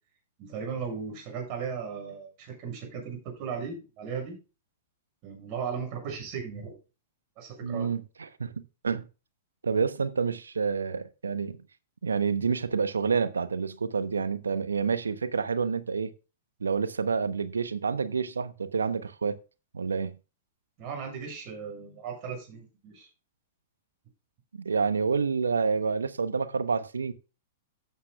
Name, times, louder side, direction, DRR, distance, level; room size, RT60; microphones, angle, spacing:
voice 1, 0.4-4.4 5.2-6.8 7.4-7.9 20.8-23.1, right 6 dB, 45° right, 6.7 m, -36 dB
voice 2, 7.6-8.0 8.4-8.5 8.8-9.1 9.6-11.6 12.0-16.1 16.6-19.4 19.7-20.1 24.5-27.1, right 5 dB, 80° right, 0.9 m, -28 dB
14.5 x 8.6 x 2.4 m
figure-of-eight pair, 105°, 0 cm